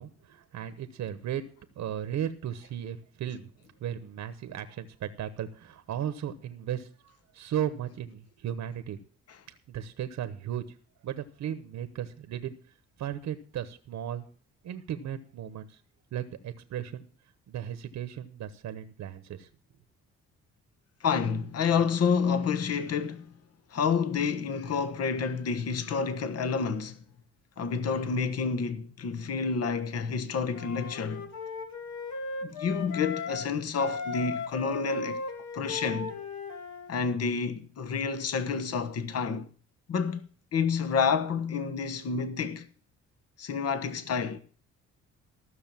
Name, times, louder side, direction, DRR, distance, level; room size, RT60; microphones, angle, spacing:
voice 1, 0.0-1.4 1.8-3.5 3.8-9.0 9.5-10.8 11.0-12.5 13.0-14.3 14.6-15.8 16.1-17.1 17.5-19.5, right 10 dB, 65° right, 1.1 m, -36 dB
voice 2, 21.0-23.3 23.7-27.0 27.6-31.3 32.4-35.2 35.5-36.1 36.9-39.5 39.9-40.3 40.5-42.7 43.4-44.4, left 5 dB, 55° left, 1.3 m, -29 dB
Wind instrument woodwind instrument, 30.5-33.5 33.7-36.9, left 4 dB, 70° left, 1.8 m, -37 dB
14.5 x 6.5 x 7.5 m
cardioid pair, 90°, 30 cm